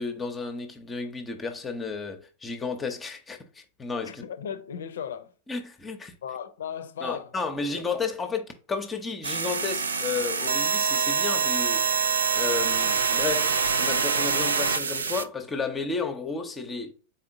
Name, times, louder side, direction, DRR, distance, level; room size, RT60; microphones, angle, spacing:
voice 1, 0.0-4.2 5.5-6.1 7.0-11.9 12.3-16.9, left 4 dB, 15° left, 0.8 m, -32 dB
voice 2, 4.0-5.3 6.2-7.3 7.6-7.8, left 8 dB, 65° left, 0.6 m, -36 dB
sound 1, 9.2-15.2, right 5 dB, 70° right, 0.4 m, -25 dB
4.2 x 3.6 x 2.6 m
figure-of-eight pair, 90°, 0 cm